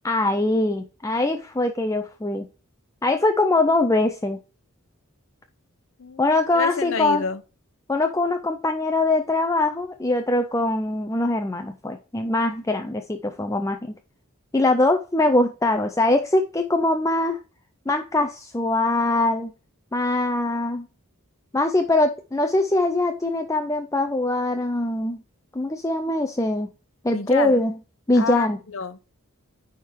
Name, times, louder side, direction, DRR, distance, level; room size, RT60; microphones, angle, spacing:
voice 1, 0.0-2.5 3.0-4.4 6.2-7.2 7.9-13.8 14.5-17.4 17.9-19.5 19.9-20.9 21.5-25.2 25.5-26.7 27.0-27.7 28.1-28.6, left 2 dB, 15° left, 0.4 m, -22 dB
voice 2, 6.0-7.4 27.1-27.6 28.1-29.0, left 4 dB, 65° left, 0.8 m, -29 dB
10.0 x 3.6 x 4.6 m
head